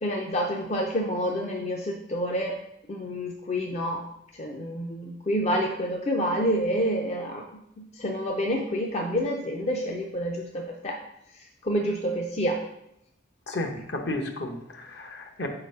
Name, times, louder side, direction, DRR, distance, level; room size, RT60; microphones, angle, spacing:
voice 1, 0.0-2.5 2.9-4.0 4.4-7.4 7.8-11.0 11.6-12.6, equal, 35° left, 0 dB, 0.5 m, -28 dB
voice 2, 13.5-15.5, left 1 dB, 60° left, 4 dB, 0.8 m, -33 dB
4.5 x 3.9 x 5.3 m, 0.80 s
head